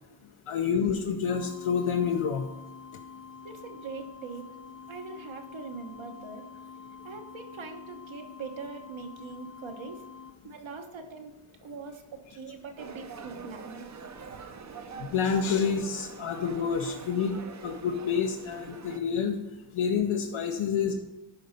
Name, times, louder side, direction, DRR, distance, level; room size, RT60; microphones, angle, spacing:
voice 1, 0.5-2.5 15.0-19.4 19.7-20.9, left 6 dB, 85° left, 3 dB, 0.8 m, -28 dB
sound 1, 1.3-10.3, left 6 dB, 30° left, 0.6 m, -47 dB
voice 2, 3.4-4.5 4.9-6.4 7.0-10.0 10.4-11.3 11.6-13.9, right 4 dB, 70° right, 4 dB, 1.2 m, -42 dB
sound 2, 12.8-19.0, right 5 dB, 35° right, 0.6 m, -44 dB
11.0 x 4.0 x 5.2 m, 1.0 s
wide cardioid pair, 145°, 48 cm